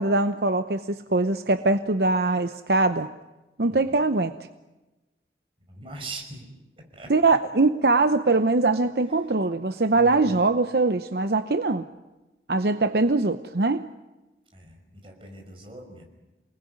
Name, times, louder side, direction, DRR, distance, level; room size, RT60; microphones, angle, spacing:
voice 1, 0.0-3.1 3.6-4.3 7.1-11.9 12.5-13.9, right 3 dB, 65° right, 9 dB, 0.8 m, -22 dB
voice 2, 5.7-6.5 6.9-7.4 9.9-10.3 14.5-16.0, right 2 dB, 30° right, 2 dB, 5.7 m, -41 dB
28.5 x 20.0 x 9.7 m, 1.1 s
head